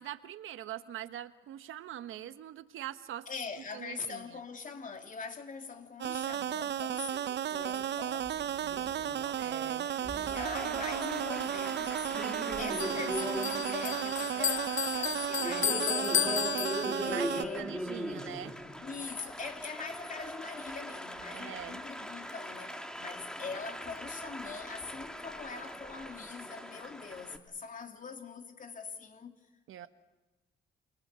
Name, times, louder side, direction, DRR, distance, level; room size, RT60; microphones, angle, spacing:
voice 1, 0.0-3.3 3.7-4.4 9.4-9.9 17.0-18.5 21.3-21.8 29.7-29.9, right 12 dB, 75° right, 1.4 m, -43 dB
voice 2, 3.3-9.4 10.0-16.4 17.0-17.8 18.8-29.4, left 5 dB, 40° left, 3.2 m, -43 dB
sound 1, 6.0-17.5, right 11 dB, 60° right, 0.8 m, -34 dB
Applause, 7.6-27.4, equal, 5° left, 2.5 m, -41 dB
Bell, 12.8-17.3, left 10 dB, 70° left, 1.1 m, -33 dB
28.5 x 24.0 x 7.0 m
cardioid pair, 95°, 21 cm